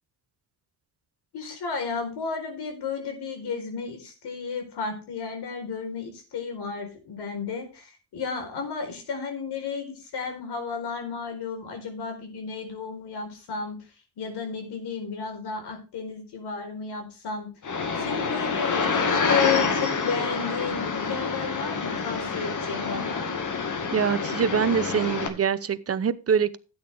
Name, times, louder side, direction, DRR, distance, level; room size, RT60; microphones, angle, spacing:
voice 1, 1.3-13.8 14.2-17.5 18.0-23.2, left 5 dB, 80° left, 4.4 m, -33 dB
sound 1, 17.6-25.3, left 5 dB, 50° left, 2.1 m, -27 dB
voice 2, 23.9-26.6, right 7 dB, 35° right, 0.9 m, -24 dB
12.5 x 8.8 x 3.5 m
cardioid pair, 95°, 39 cm